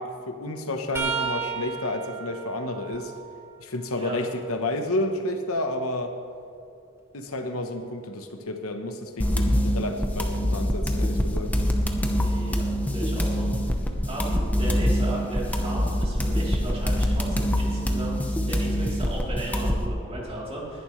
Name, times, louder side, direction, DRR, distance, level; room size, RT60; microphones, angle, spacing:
voice 1, 0.0-3.1 3.6-6.1 7.1-11.5, left 1 dB, 75° left, 6 dB, 1.1 m, -30 dB
sound 1, 0.9-4.7 5.2-7.2 10.1-10.3 11.5-11.7 13.0-13.1, right 5 dB, 10° right, 1.1 m, -36 dB
sound 2, 9.2-19.9, equal, 5° left, 1.0 m, -25 dB
voice 2, 12.1-13.8 14.0-20.8, right 1 dB, 30° right, -5 dB, 3.4 m, -35 dB
20.0 x 11.0 x 3.3 m, 2.5 s
head